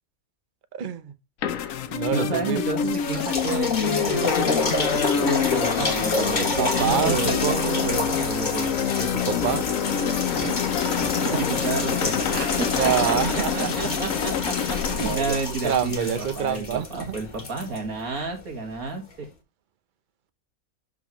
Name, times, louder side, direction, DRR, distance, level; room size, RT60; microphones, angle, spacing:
voice 1, 0.7-1.1 1.9-2.9 6.4-8.0 8.9-9.7 10.3-10.6 11.0-11.4 12.3-12.4 12.8-13.9 14.9-15.4 15.6-17.2, right 8 dB, 45° right, 0.6 m, -27 dB
sound 1, 1.4-16.0, left 7 dB, 65° left, 1.1 m, -27 dB
sound 2, 1.5-15.2, left 9 dB, 85° left, 1.2 m, -35 dB
voice 2, 2.1-8.8 11.2-19.0, right 3 dB, 70° right, 2.1 m, -31 dB
sound 3, 2.7-18.5 19.1-19.2, left 2 dB, 30° left, 1.3 m, -29 dB
11.5 x 4.1 x 3.0 m
omnidirectional pair, 1.6 m